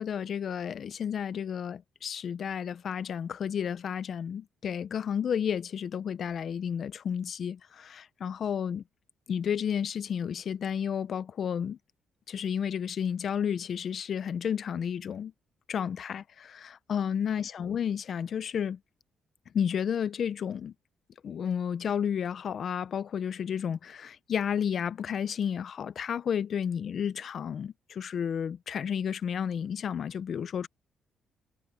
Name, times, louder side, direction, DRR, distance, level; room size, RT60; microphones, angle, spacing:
voice 1, 0.0-8.8 9.3-11.8 12.3-15.3 15.7-18.8 19.5-20.7 21.2-30.7, left 8 dB, 55° left, 0.6 m, -32 dB
cardioid pair, 100°, 0 cm